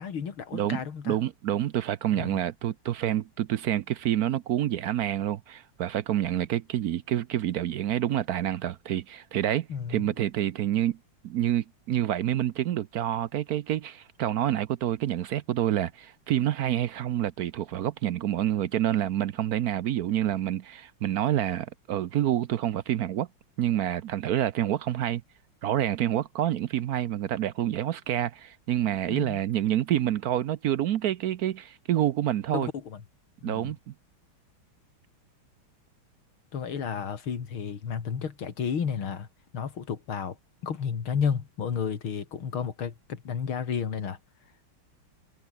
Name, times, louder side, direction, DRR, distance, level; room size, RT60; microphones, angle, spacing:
voice 1, 0.0-1.2 2.1-2.4 9.7-10.1 29.1-29.4 32.5-33.0 33.4-33.7 36.5-39.3 39.5-40.4 40.6-44.2, left 7 dB, 75° left, 3.1 m, -32 dB
voice 2, 0.5-11.0 11.2-23.3 23.6-25.2 25.6-32.7 33.4-33.9, right 12 dB, 70° right, 0.9 m, -28 dB
omnidirectional pair, 2.3 m